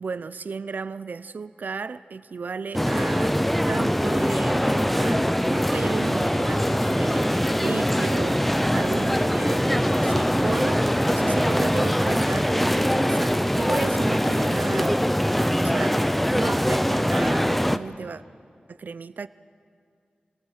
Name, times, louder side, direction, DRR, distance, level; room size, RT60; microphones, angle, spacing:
voice 1, 0.0-3.4 3.7-15.0 15.6-16.1 16.3-18.2 18.7-19.3, right 5 dB, 70° right, 0.5 m, -34 dB
sound 1, 2.7-17.8, equal, 5° left, 0.6 m, -22 dB
Guitar, 6.0-15.3, left 1 dB, 25° left, 1.2 m, -45 dB
25.0 x 19.5 x 6.5 m
wide cardioid pair, 85°, 3 cm